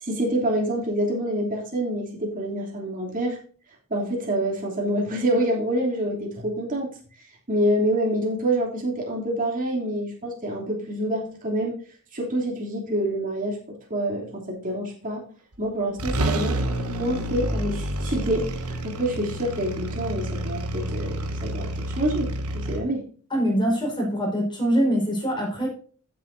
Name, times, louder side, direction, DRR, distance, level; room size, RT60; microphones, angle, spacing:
voice 1, 0.0-3.4 3.9-6.9 7.5-11.7 12.1-15.2 15.6-23.1, right 1 dB, 40° right, -2 dB, 3.0 m, -27 dB
sound 1, 15.5-15.6 16.0-22.8, right 1 dB, 85° right, 1.2 m, -29 dB
voice 2, 23.3-25.7, equal, 20° left, 0 dB, 4.7 m, -23 dB
14.5 x 7.6 x 2.7 m, 0.43 s
head